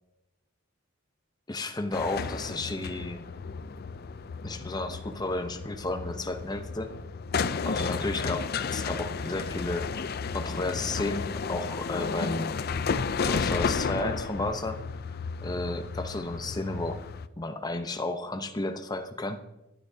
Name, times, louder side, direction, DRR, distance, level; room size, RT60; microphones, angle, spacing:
voice 1, 1.5-3.2 4.4-6.9 7.6-9.9 10.3-12.6 13.3-14.8 15.4-17.0 17.4-19.4, left 2 dB, 20° left, 7 dB, 0.7 m, -32 dB
sound 1, 1.9-17.3, left 5 dB, 50° left, 0.4 m, -33 dB
22.0 x 11.5 x 2.8 m, 0.95 s
head